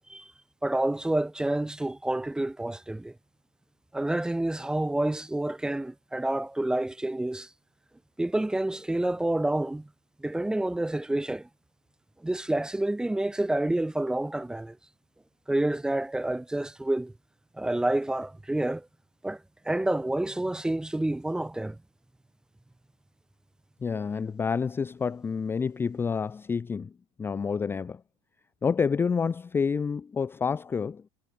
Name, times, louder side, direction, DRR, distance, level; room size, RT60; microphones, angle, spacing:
voice 1, 0.6-3.1 3.9-7.5 8.2-9.9 10.2-11.5 12.2-14.8 15.5-17.1 17.5-18.9 19.2-21.8, right 1 dB, 5° right, 0.8 m, -28 dB
voice 2, 23.8-26.9 27.2-28.0 28.6-31.0, left 5 dB, 15° left, 0.5 m, -28 dB
supercardioid pair, 130°, 14 cm